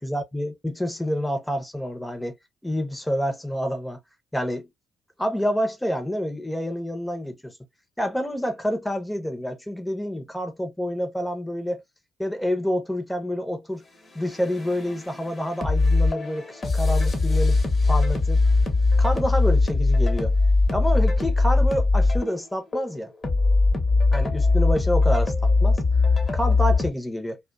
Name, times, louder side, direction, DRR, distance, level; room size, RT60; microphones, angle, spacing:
voice 1, 0.0-2.4 2.6-4.0 4.3-4.7 5.2-7.5 8.0-11.8 12.2-13.8 14.1-17.6 17.9-18.4 19.0-20.3 20.7-23.1 24.1-25.8 26.3-27.4, equal, 5° left, 0.7 m, -28 dB
sound 1, 14.2-26.9, left 3 dB, 40° left, 0.9 m, -21 dB
2.5 x 2.2 x 2.3 m
hypercardioid pair, 45°, 0 cm